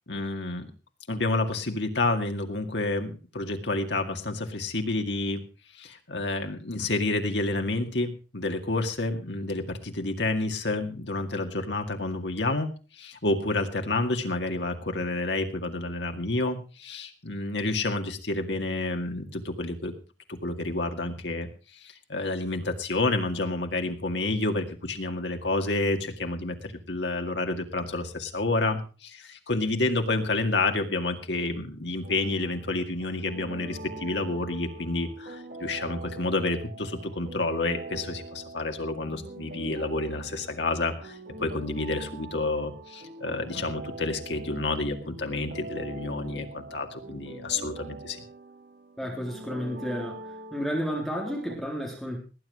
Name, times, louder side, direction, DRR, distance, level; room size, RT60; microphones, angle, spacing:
voice 1, 0.1-0.7 1.1-5.4 5.8-12.7 13.0-19.9 20.3-21.5 21.8-48.2, left 2 dB, 75° left, 5 dB, 2.1 m, -29 dB
sound 1, 32.0-51.6, right 2 dB, 55° right, 2.4 m, -43 dB
voice 2, 49.0-50.2 50.5-52.2, equal, ahead, -2 dB, 3.5 m, -31 dB
18.5 x 9.7 x 4.9 m, 0.35 s
head